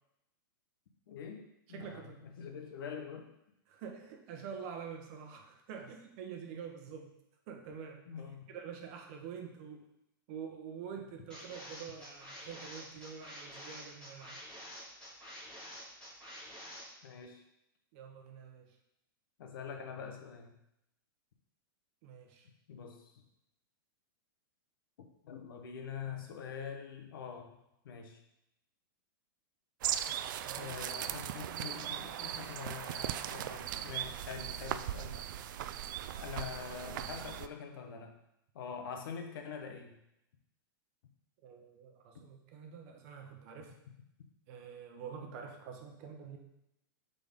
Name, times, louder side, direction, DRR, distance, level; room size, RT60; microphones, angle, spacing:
voice 1, 1.1-1.4 1.7-3.3 8.1-8.4 17.0-17.4 19.4-20.5 22.7-23.1 25.0-27.5 27.8-28.2 30.6-35.3 36.2-38.1 38.5-40.0, left 6 dB, 70° left, 4 dB, 1.1 m, -44 dB
voice 2, 1.7-2.3 3.7-7.1 7.5-8.0 8.5-9.9 10.3-14.4 17.9-18.8 22.0-22.5 30.3-30.8 41.4-43.8 44.5-46.4, right 7 dB, 40° right, 3 dB, 1.0 m, -46 dB
sound 1, 11.3-16.8, equal, 5° left, 2.5 m, -48 dB
sound 2, 29.8-37.5, right 11 dB, 60° right, 0.4 m, -38 dB
7.8 x 4.1 x 3.7 m, 0.84 s
supercardioid pair, 155°, 12 cm